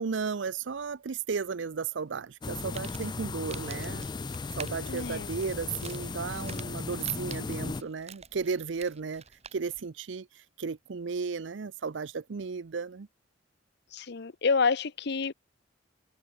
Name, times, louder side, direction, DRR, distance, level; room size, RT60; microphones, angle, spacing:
voice 1, 0.0-4.1 4.5-9.2 9.5-13.1, right 5 dB, 75° right, 0.6 m, -34 dB
sound 1, 2.4-7.8, left 4 dB, 25° left, 0.3 m, -36 dB
Crumpling crinkling, 2.5-9.9, right 6 dB, 35° right, 6.1 m, -49 dB
voice 2, 4.9-5.3 13.9-15.3, left 4 dB, 60° left, 0.8 m, -28 dB
head